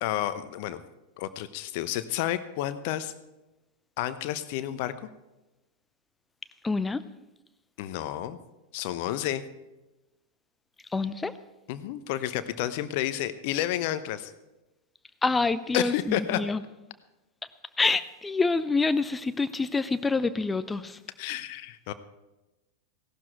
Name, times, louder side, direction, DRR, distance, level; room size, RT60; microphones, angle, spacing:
voice 1, 0.0-0.8 1.2-3.1 4.0-4.9 7.8-8.4 8.7-9.4 11.7-14.3 15.7-16.4 21.2-21.9, left 13 dB, 50° left, 13 dB, 0.9 m, -30 dB
voice 2, 6.6-7.0 10.9-11.3 15.2-16.6 17.8-21.0, left 3 dB, 10° left, 14 dB, 0.6 m, -26 dB
17.0 x 12.0 x 4.6 m, 1.0 s
figure-of-eight pair, 90°, 0 cm